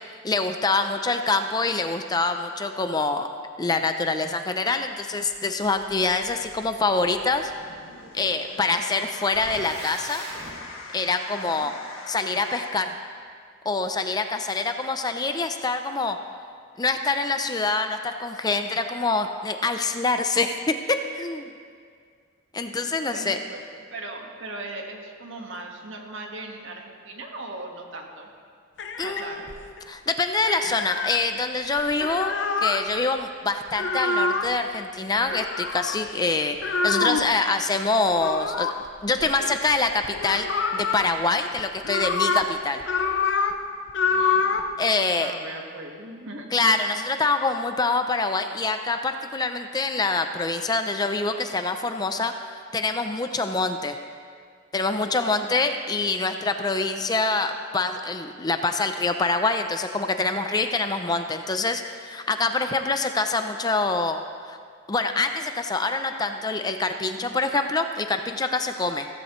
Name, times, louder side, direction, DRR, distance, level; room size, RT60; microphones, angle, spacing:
voice 1, 0.2-3.3 3.6-7.5 8.1-10.3 10.9-11.7 12.1-12.9 13.7-16.2 16.8-21.4 22.5-23.4 29.0-29.6 29.9-32.3 32.6-36.6 36.8-38.7 39.0-42.8 44.8-45.3 46.5-52.3 52.7-54.0 54.7-64.2 64.5-64.6 64.9-69.1, left 3 dB, 20° left, 7 dB, 0.5 m, -25 dB
sound 1, 5.0-12.7, left 3 dB, 80° left, 1.7 m, -43 dB
sound 2, 9.3-10.5, right 2 dB, 55° right, 2.8 m, -39 dB
voice 2, 11.3-11.7 22.7-23.6 23.9-28.3 29.0-29.5 44.1-44.5 45.1-46.5, right 2 dB, 70° right, 1 dB, 1.7 m, -39 dB
sound 3, 28.8-29.8 30.5-31.2 31.8-32.8 33.7-34.5 35.3-36.1 36.6-37.3 38.2-39.8 40.0-41.0 41.6-42.5 42.8-43.6 43.9-44.7, left 4 dB, 60° left, 0.7 m, -26 dB
16.0 x 14.5 x 3.1 m, 2.1 s
head